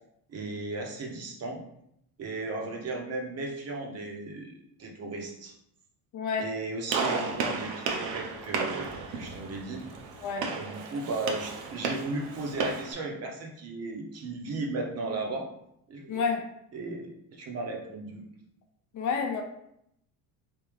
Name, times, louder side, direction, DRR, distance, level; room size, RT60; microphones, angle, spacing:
voice 1, 0.3-1.6 2.2-5.5 6.4-9.9 10.5-15.5 15.9-16.2 16.7-18.2, right 2 dB, 40° right, 1 dB, 0.7 m, -35 dB
voice 2, 6.1-6.5 10.2-10.5 16.1-16.4 18.9-19.4, left 5 dB, 45° left, 3 dB, 0.6 m, -29 dB
Gunshot gunfire, 6.9-12.9, right 4 dB, 75° right, 0.7 m, -33 dB
3.5 x 2.8 x 3.1 m, 0.76 s
cardioid pair, 130°, 41 cm